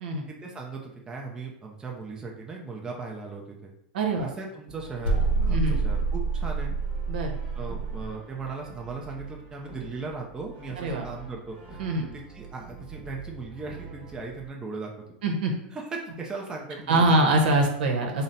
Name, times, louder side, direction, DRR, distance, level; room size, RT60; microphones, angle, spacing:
voice 1, 0.3-3.7 4.2-6.7 7.6-11.8 12.1-14.9 15.7-17.3, right 4 dB, 15° right, -1 dB, 0.5 m, -38 dB
voice 2, 3.9-4.3 5.5-5.8 7.1-7.4 10.8-11.0 11.8-12.1 15.2-15.5 16.9-18.2, right 2 dB, 75° right, 2 dB, 0.8 m, -24 dB
Brass instrument, 4.7-14.5, right 5 dB, 35° right, 1.3 m, -45 dB
sound 1, 5.0-8.1, right 4 dB, 80° left, 0.8 m, -27 dB
3.9 x 2.1 x 3.9 m, 0.76 s
supercardioid pair, 135°, 5 cm